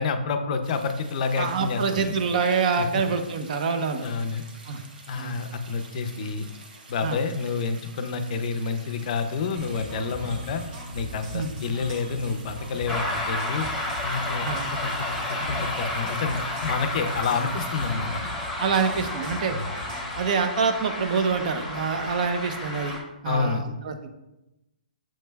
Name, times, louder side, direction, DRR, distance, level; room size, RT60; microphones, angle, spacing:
voice 1, 0.0-2.1 2.8-3.0 4.0-4.4 5.1-6.5 6.9-10.6 10.9-13.7 14.0-14.5 14.7-18.2 19.5-19.7 23.2-23.6, left 5 dB, 50° left, 7 dB, 0.4 m, -29 dB
sound 1, 0.6-18.0, right 3 dB, 70° right, 0.9 m, -49 dB
voice 2, 1.4-4.1 4.7-4.8 5.1-5.4 7.0-7.2 11.3-11.5 14.4-14.7 18.6-19.6 20.2-23.0 23.2-24.1, right 5 dB, 50° right, 7 dB, 0.6 m, -26 dB
sound 2, 9.6-20.2, equal, 30° right, 1.0 m, -39 dB
sound 3, 12.9-23.0, left 2 dB, 5° left, 0.8 m, -32 dB
7.1 x 3.1 x 2.2 m, 0.95 s
hypercardioid pair, 150°, 5 cm